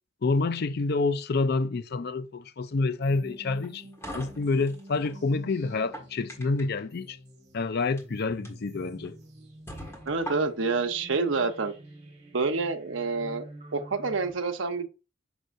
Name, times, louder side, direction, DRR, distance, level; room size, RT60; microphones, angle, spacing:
voice 1, 0.2-7.2 7.5-9.2, left 3 dB, 55° left, 0.5 m, -28 dB
sound 1, 3.0-14.3, right 1 dB, 35° right, 2.0 m, -48 dB
sound 2, 3.5-5.2 5.7-6.8 7.8-8.0 8.4-8.5 9.0-9.1 9.7-10.8, right 1 dB, 15° left, 1.6 m, -41 dB
voice 2, 10.1-11.7 12.3-13.4 13.7-14.9, right 4 dB, 75° right, 0.9 m, -28 dB
6.4 x 5.9 x 2.6 m
head